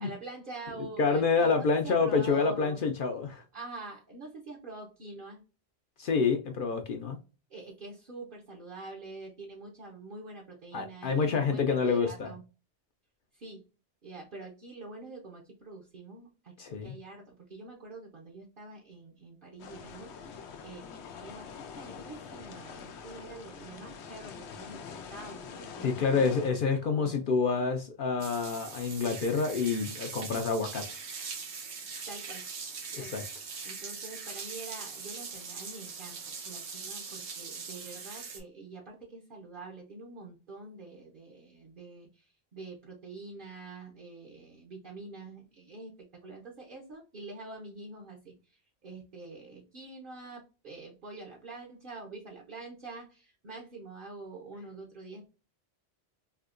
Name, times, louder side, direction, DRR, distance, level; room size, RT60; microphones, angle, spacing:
voice 1, 0.0-2.8 3.5-5.4 7.5-12.4 13.3-13.6 14.0-20.9 21.2-21.5 21.8-26.5 26.8-27.2 32.1-32.4 33.0-45.9 46.2-55.3, right 3 dB, 55° right, 0.8 m, -46 dB
voice 2, 1.0-3.4 6.0-7.2 10.7-12.3 16.6-16.9 25.8-30.8 32.9-33.2, left 4 dB, 60° left, 0.6 m, -28 dB
sound 1, 19.6-26.5, left 6 dB, 90° left, 0.9 m, -45 dB
sound 2, 28.2-38.4, right 5 dB, 85° right, 1.1 m, -41 dB
3.4 x 2.8 x 2.4 m
omnidirectional pair, 1.1 m